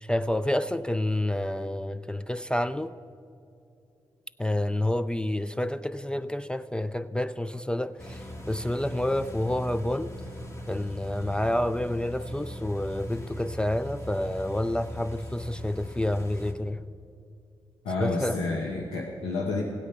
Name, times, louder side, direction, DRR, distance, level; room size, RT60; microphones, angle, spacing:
voice 1, 0.0-2.9 4.4-10.1 10.7-16.8 18.0-18.4, left 1 dB, 10° left, 0.4 m, -29 dB
sound 1, 8.0-16.5, equal, 30° left, 1.9 m, -40 dB
voice 2, 17.8-19.6, left 3 dB, 85° left, 1.1 m, -29 dB
16.0 x 8.3 x 5.7 m
supercardioid pair, 40°, 10 cm